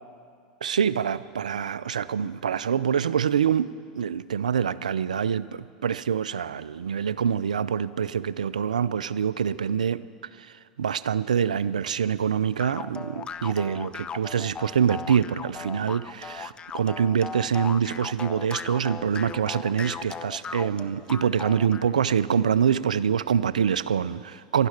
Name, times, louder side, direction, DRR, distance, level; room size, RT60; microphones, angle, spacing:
voice 1, 0.6-10.0 10.4-10.5 10.8-24.7, right 7 dB, 85° right, 16 dB, 0.4 m, -25 dB
sound 1, 12.6-21.9, left 6 dB, 25° left, 0.7 m, -37 dB
12.0 x 11.5 x 9.7 m, 2.2 s
hypercardioid pair, 90°, 4 cm